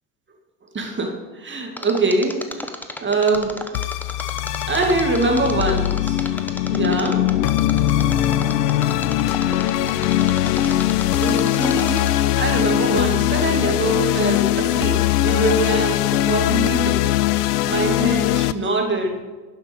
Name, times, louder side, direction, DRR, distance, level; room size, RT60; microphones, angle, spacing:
voice 1, 0.7-2.7 3.0-3.5 4.7-6.2 6.7-7.2 11.2-12.0 12.4-17.0 17.4-19.2, right 2 dB, 25° right, 1 dB, 2.2 m, -23 dB
Mechanisms, 1.8-12.3 12.7-12.8, left 1 dB, 5° left, 0.8 m, -33 dB
sound 1, 3.7-18.5, left 13 dB, 80° left, 0.5 m, -20 dB
11.5 x 5.9 x 5.1 m, 1.3 s
hypercardioid pair, 75°, 47 cm